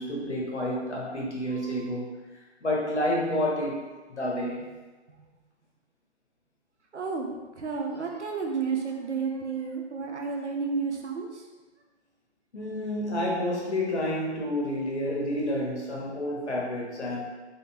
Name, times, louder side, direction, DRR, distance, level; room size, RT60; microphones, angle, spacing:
voice 1, 0.0-2.1 2.6-3.8 4.1-4.7 12.5-17.2, left 1 dB, 75° left, -3 dB, 1.4 m, -29 dB
voice 2, 6.9-7.3 7.6-11.4, right 5 dB, 75° right, 2 dB, 0.8 m, -31 dB
3.9 x 3.6 x 2.9 m, 1.2 s
figure-of-eight pair, 130°, 35 cm